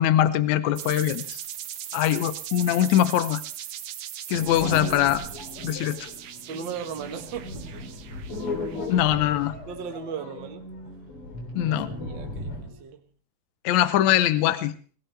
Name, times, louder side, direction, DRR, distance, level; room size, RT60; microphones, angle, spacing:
voice 1, 0.0-1.4 1.9-3.4 4.3-5.2 5.6-6.1 8.9-9.5 11.6-11.9 13.6-14.7, left 12 dB, 70° left, 12 dB, 2.1 m, -22 dB
sound 1, 0.7-9.3, right 10 dB, 65° right, 1.6 m, -39 dB
sound 2, 4.3-12.8, left 1 dB, 45° left, 4.0 m, -36 dB
voice 2, 6.5-7.9 9.7-10.7 11.6-13.1, right 7 dB, 45° right, 5 dB, 1.6 m, -37 dB
21.5 x 17.5 x 3.4 m, 0.40 s
omnidirectional pair, 3.8 m